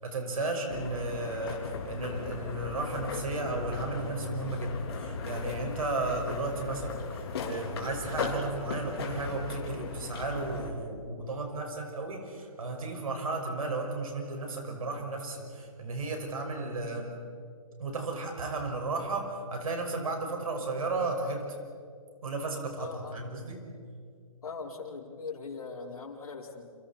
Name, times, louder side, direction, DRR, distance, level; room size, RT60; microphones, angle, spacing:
voice 1, 0.0-17.2 17.8-21.5 22.2-23.6, right 2 dB, 75° right, 2 dB, 5.8 m, -34 dB
sound 1, 0.7-10.7, left 4 dB, 45° left, 3.7 m, -37 dB
voice 2, 22.8-23.2 24.4-26.6, left 4 dB, 80° left, -4 dB, 4.9 m, -40 dB
29.5 x 28.0 x 4.4 m, 2.2 s
hypercardioid pair, 170°, 18 cm